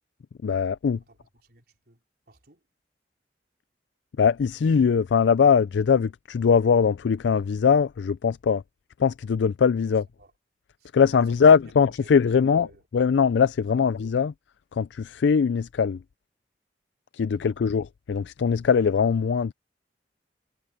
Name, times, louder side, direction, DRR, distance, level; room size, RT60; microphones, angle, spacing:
voice 1, 0.4-1.0 4.2-8.6 9.0-10.0 10.9-12.7 12.9-14.3 14.7-16.0 17.1-19.5, left 6 dB, 85° left, 0.4 m, -21 dB
voice 2, 1.1-2.6 9.8-9.9 10.2-10.3 10.8-12.8 17.4-17.5, right 2 dB, 60° right, 4.8 m, -51 dB
head